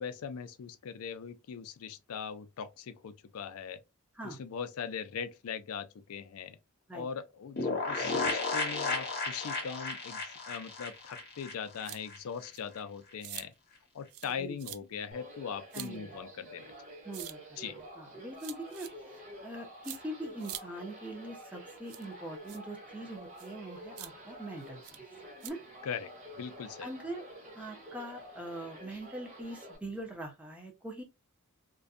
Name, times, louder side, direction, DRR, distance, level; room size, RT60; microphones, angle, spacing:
voice 1, 0.0-3.8 4.2-6.6 6.9-13.5 13.9-16.7 17.6-17.8 25.8-26.9, left 7 dB, 65° left, 0.4 m, -40 dB
sound 1, 7.6-12.2 12.4-12.5 12.8-12.9, left 3 dB, 45° left, 0.7 m, -34 dB
sound 2, 11.8-12.0 12.5-12.6 13.2-13.5 14.1-14.3 14.6-14.8 15.7-15.9 17.1-17.3 18.4-18.9 19.8-20.0 20.4-20.6 21.9-22.1 22.5-22.6 23.4-23.5 24.0-24.1 24.8-25.0 25.4-25.5, right 13 dB, 70° right, 0.3 m, -43 dB
sound 3, 15.1-29.8, equal, 40° right, 1.3 m, -49 dB
voice 2, 15.7-16.1 17.0-17.6 18.0-18.9 19.4-25.0 25.4-25.6 26.8-27.2 27.6-31.0, right 1 dB, 5° right, 0.6 m, -42 dB
2.5 x 2.2 x 2.4 m
head